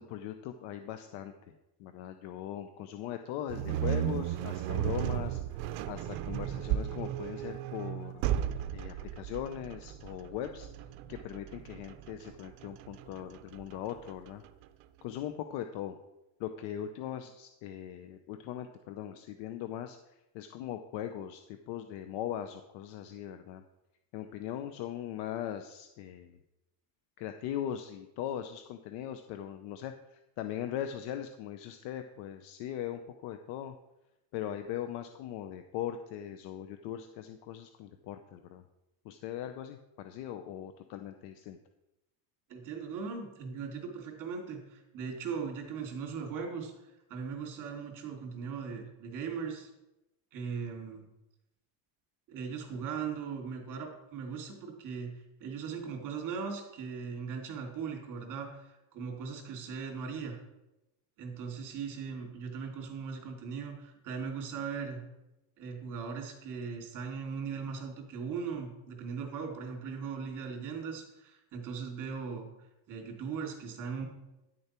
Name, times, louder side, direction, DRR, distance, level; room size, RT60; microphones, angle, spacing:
voice 1, 0.0-8.2 8.7-10.7 11.1-14.4 15.0-16.0 16.4-23.6 24.1-26.4 27.2-33.7 34.3-38.6 39.0-41.6, left 10 dB, 70° left, 8 dB, 0.7 m, -40 dB
sound 1, 3.5-14.6, right 11 dB, 70° right, 0.7 m, -35 dB
voice 2, 42.5-46.7 47.1-49.7 50.3-51.0 52.3-55.1 55.4-60.4 61.2-65.0 65.6-72.5 72.9-74.1, right 6 dB, 45° right, 0 dB, 2.8 m, -39 dB
10.5 x 6.7 x 4.4 m, 0.94 s
cardioid pair, 155°, 44 cm